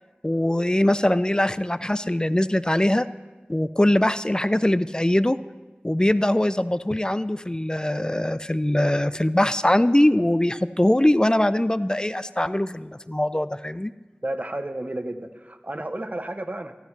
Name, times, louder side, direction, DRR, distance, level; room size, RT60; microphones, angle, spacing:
voice 1, 0.2-3.1 3.5-5.4 5.8-13.9, left 1 dB, 20° left, 14 dB, 0.4 m, -22 dB
voice 2, 14.2-16.7, right 1 dB, 40° right, 7 dB, 0.7 m, -32 dB
14.0 x 13.0 x 3.2 m, 1.2 s
wide cardioid pair, 40°, 4 cm